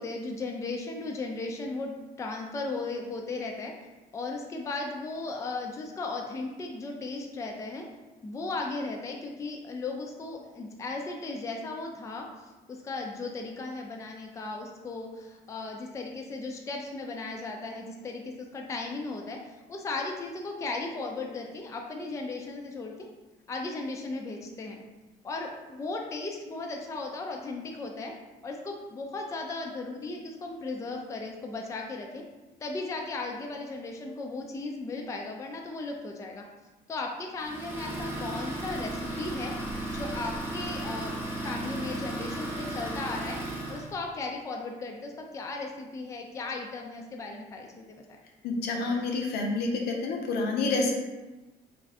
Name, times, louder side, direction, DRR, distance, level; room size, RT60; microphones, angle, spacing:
voice 1, 0.0-3.7 4.1-7.8 8.2-12.3 12.7-22.9 23.5-24.8 25.2-28.1 28.4-32.2 32.6-36.4 36.9-39.5 39.9-41.1 41.4-43.4 43.7-48.0, left 3 dB, 20° left, 1 dB, 0.3 m, -36 dB
Idling, 37.4-43.9, right 1 dB, 15° right, 0.7 m, -35 dB
voice 2, 48.4-50.9, left 3 dB, 75° left, 1 dB, 0.6 m, -28 dB
2.6 x 2.4 x 3.2 m, 1.1 s
cardioid pair, 110°, 17 cm